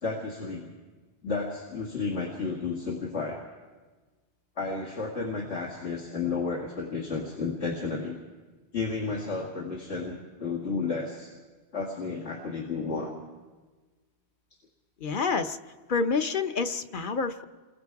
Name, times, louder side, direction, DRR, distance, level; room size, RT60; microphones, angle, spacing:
voice 1, 0.0-0.7 1.2-3.4 4.6-8.2 8.7-11.3 11.7-13.1, left 4 dB, 90° left, -3 dB, 2.6 m, -32 dB
voice 2, 15.0-15.6 15.9-17.4, left 4 dB, 50° left, 8 dB, 1.0 m, -28 dB
28.5 x 22.5 x 4.8 m, 1.3 s
omnidirectional pair, 1.1 m